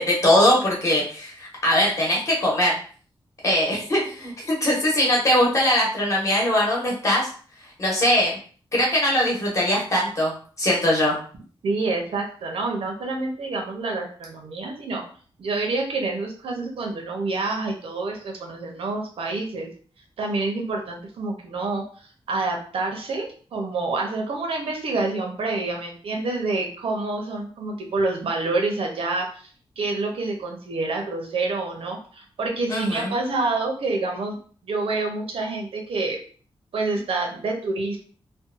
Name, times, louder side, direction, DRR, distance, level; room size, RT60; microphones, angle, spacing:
voice 1, 0.0-2.7 3.4-7.3 7.8-8.4 8.7-10.3 10.6-11.2 32.7-33.2, left 1 dB, 35° left, -3 dB, 0.9 m, -21 dB
voice 2, 11.6-15.0 15.4-19.7 20.2-29.5 29.8-34.4 34.6-36.2 36.7-38.0, right 3 dB, 90° right, 1 dB, 0.7 m, -27 dB
2.6 x 2.2 x 2.5 m, 0.43 s
wide cardioid pair, 175°, 9 cm